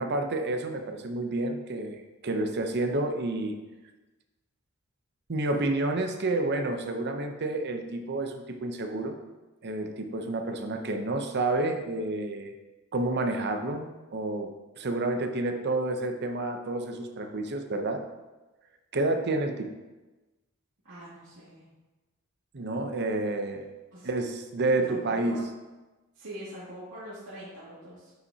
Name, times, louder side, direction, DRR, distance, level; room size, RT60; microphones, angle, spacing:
voice 1, 0.0-3.6 5.3-9.2 9.6-12.5 12.9-18.0 18.9-19.7 22.5-23.7 24.0-25.4, right 2 dB, 50° right, 6 dB, 0.7 m, -29 dB
voice 2, 20.8-21.7 23.9-24.1 24.7-25.4 26.1-28.1, equal, 90° right, -11 dB, 2.3 m, -44 dB
9.8 x 5.7 x 2.8 m, 1.1 s
head